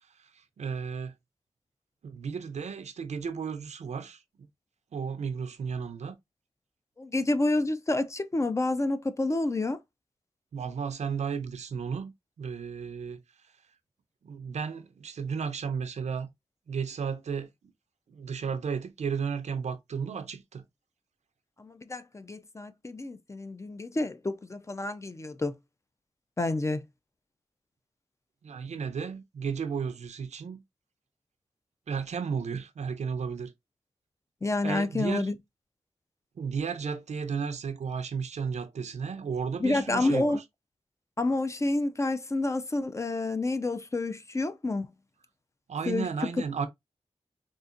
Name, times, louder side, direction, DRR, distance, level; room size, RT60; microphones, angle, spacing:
voice 1, 0.6-1.1 2.0-4.2 4.9-6.2 10.5-12.1 12.4-13.2 14.2-16.3 16.7-17.5 18.1-20.6 28.4-30.6 31.9-33.5 34.6-35.3 36.4-40.4 45.7-46.7, right 6 dB, 85° right, 0.5 m, -33 dB
voice 2, 7.0-9.8 21.6-25.5 26.4-26.8 34.4-35.4 39.6-40.4 41.2-44.9 45.9-46.1, left 2 dB, 25° left, 0.3 m, -29 dB
3.9 x 2.5 x 2.4 m
wide cardioid pair, 80°, 11 cm